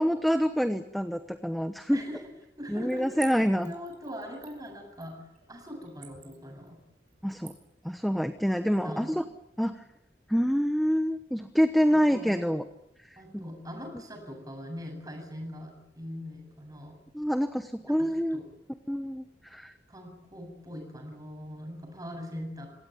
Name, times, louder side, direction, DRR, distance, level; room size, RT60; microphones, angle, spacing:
voice 1, 0.0-2.0 2.7-3.7 7.2-7.5 7.8-9.2 9.6-9.8 10.3-12.7 13.3-13.4 17.1-18.4 18.9-19.7, equal, ahead, 8 dB, 1.0 m, -26 dB
voice 2, 2.6-5.2 5.5-6.8 8.4-9.1 11.9-12.4 13.2-17.0 17.8-18.4 19.9-22.7, equal, 20° right, 3 dB, 7.8 m, -42 dB
Splash splatter / Trickle dribble, 2.9-9.3 9.6-9.7, right 8 dB, 45° right, 6.2 m, -49 dB
26.5 x 17.5 x 9.4 m, 0.83 s
head